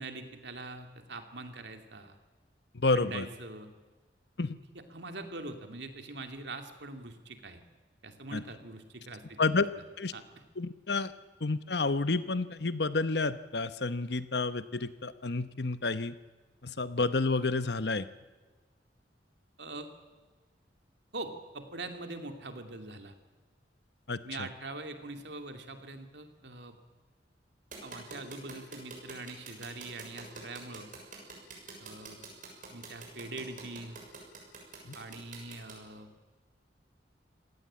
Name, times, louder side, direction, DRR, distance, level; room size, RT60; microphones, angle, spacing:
voice 1, 0.0-2.2 2.9-3.7 4.7-7.6 8.0-9.6 10.1-10.2 19.6-19.9 21.1-23.1 24.2-26.7 27.8-30.9 31.8-32.2 32.7-34.0 34.9-36.1, right 2 dB, 70° right, 6 dB, 2.7 m, -43 dB
voice 2, 2.7-3.3 4.4-4.6 8.3-8.4 9.4-9.7 10.0-10.1 10.6-11.1 11.4-16.1 16.6-18.1 24.1-24.5 34.9-35.0, left 3 dB, 65° left, 13 dB, 1.0 m, -30 dB
sound 1, 27.7-35.7, right 4 dB, 50° right, 6.7 m, -45 dB
26.5 x 18.0 x 8.8 m, 1.3 s
head